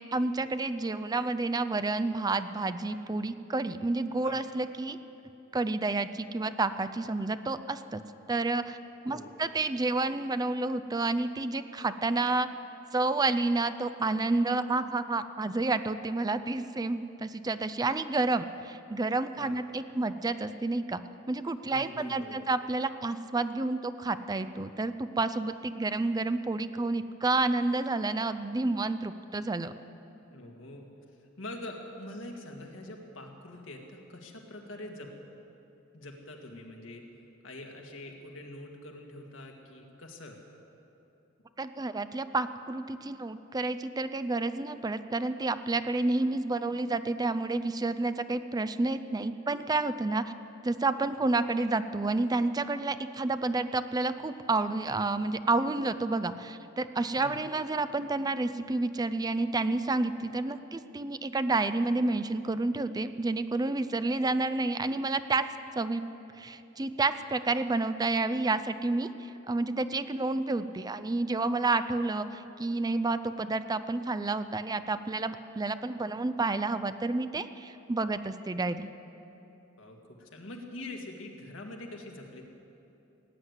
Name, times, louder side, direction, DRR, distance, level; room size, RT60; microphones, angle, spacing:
voice 1, 0.1-5.0 5.5-8.0 8.3-8.8 9.0-12.5 12.9-21.0 21.3-29.7 41.6-50.2 50.6-65.4 65.8-66.0 66.4-78.9, right 3 dB, 20° right, 12 dB, 0.5 m, -30 dB
voice 2, 21.7-22.4 30.3-30.9 31.4-35.1 35.9-37.0 37.4-40.4 57.2-57.3 79.8-82.4, left 1 dB, 75° left, 1 dB, 1.9 m, -44 dB
18.0 x 9.6 x 8.2 m, 2.9 s
head